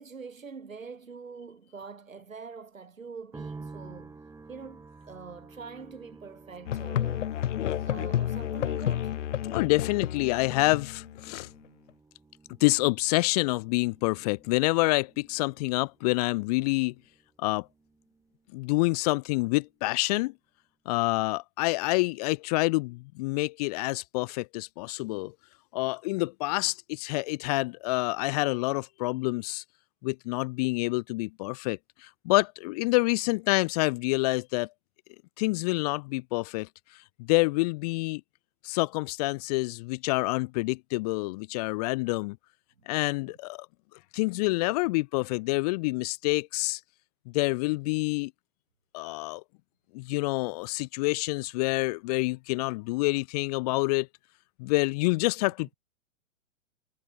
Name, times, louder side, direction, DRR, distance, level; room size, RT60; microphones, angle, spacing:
voice 1, 0.0-7.3 7.8-9.2, right 5 dB, 85° right, 4.6 m, -44 dB
sound 1, 3.3-18.6 18.8-19.7, right 3 dB, 10° right, 5.5 m, -51 dB
Musical instrument, 6.7-11.5, left 11 dB, 65° left, 1.0 m, -31 dB
voice 2, 9.5-11.5 12.6-16.9 17.4-17.7 18.5-20.3 20.9-25.3 25.7-29.6 30.0-34.7 35.4-38.2 38.6-42.4 42.9-43.7 44.1-46.8 47.3-48.3 48.9-49.4 49.9-54.1 54.6-55.7, left 23 dB, 30° left, 0.7 m, -27 dB
hypercardioid pair, 120°, 39 cm